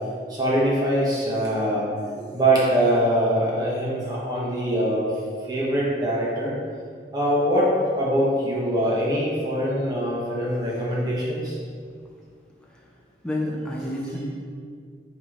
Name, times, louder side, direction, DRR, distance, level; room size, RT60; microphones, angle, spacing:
voice 1, 0.3-5.1 5.4-6.5 7.1-7.7 8.0-11.6, right 1 dB, 20° right, -6 dB, 1.4 m, -23 dB
voice 2, 13.2-14.3, left 1 dB, 5° left, -3 dB, 0.8 m, -29 dB
5.8 x 3.4 x 5.5 m, 2.1 s
head